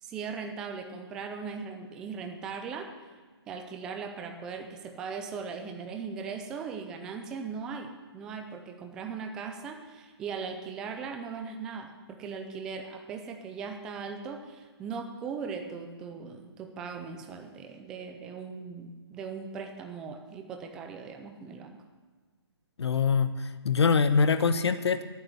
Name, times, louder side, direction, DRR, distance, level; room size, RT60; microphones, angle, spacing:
voice 1, 0.0-2.9 3.5-21.8, right 5 dB, 5° right, 4 dB, 0.4 m, -39 dB
voice 2, 22.8-25.0, left 5 dB, 75° left, 11 dB, 1.0 m, -24 dB
12.5 x 9.0 x 7.8 m, 1.4 s
hypercardioid pair, 170°, 14 cm